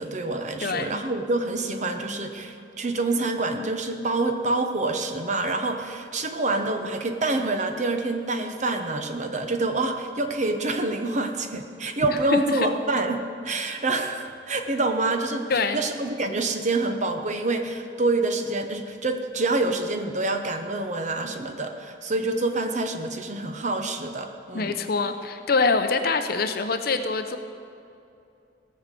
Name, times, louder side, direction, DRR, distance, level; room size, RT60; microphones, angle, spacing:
voice 1, 0.0-24.8, right 2 dB, 35° right, 6 dB, 0.8 m, -27 dB
voice 2, 0.6-1.0 12.3-12.7 15.5-15.8 24.5-27.4, left 4 dB, 50° left, 8 dB, 0.7 m, -24 dB
17.0 x 6.5 x 7.6 m, 2.6 s
head